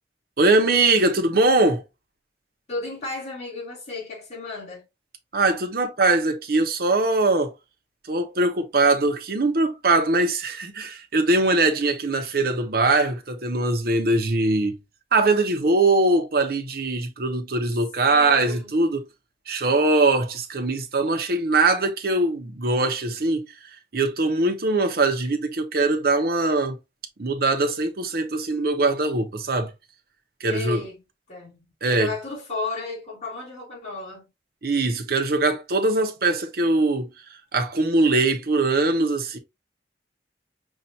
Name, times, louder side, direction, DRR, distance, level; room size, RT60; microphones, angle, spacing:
voice 1, 0.4-1.8 5.3-7.5 8.1-14.8 15.1-19.0 19.5-23.5 23.9-26.8 27.2-29.7 30.4-30.8 31.8-32.1 34.6-37.1 37.5-39.4, right 2 dB, 55° right, 0.8 m, -21 dB
voice 2, 2.7-4.9 18.1-18.8 30.5-31.0 31.3-34.2, left 3 dB, 40° left, 2.2 m, -34 dB
5.4 x 2.4 x 2.8 m
head